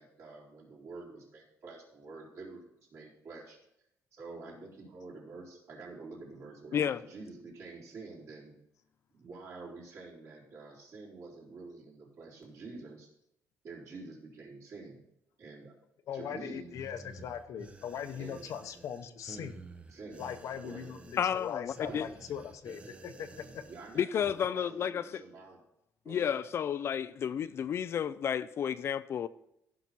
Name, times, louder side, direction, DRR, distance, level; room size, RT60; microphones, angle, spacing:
voice 1, 0.0-3.6 4.1-8.6 9.2-13.1 13.6-15.0 15.4-15.7 16.1-16.7 18.2-18.4 19.9-20.3 20.6-20.9 21.9-22.2 23.7-25.6 26.0-26.4, right 3 dB, 50° right, 3.9 m, -48 dB
voice 2, 16.1-19.7 20.2-23.6, left 8 dB, 60° left, 0.8 m, -40 dB
sound 1, 16.7-24.5, right 3 dB, 20° right, 0.6 m, -52 dB
voice 3, 21.2-22.0 24.0-25.2 26.1-29.3, left 8 dB, 45° left, 0.3 m, -31 dB
15.0 x 5.9 x 4.1 m
cardioid pair, 155°, 6 cm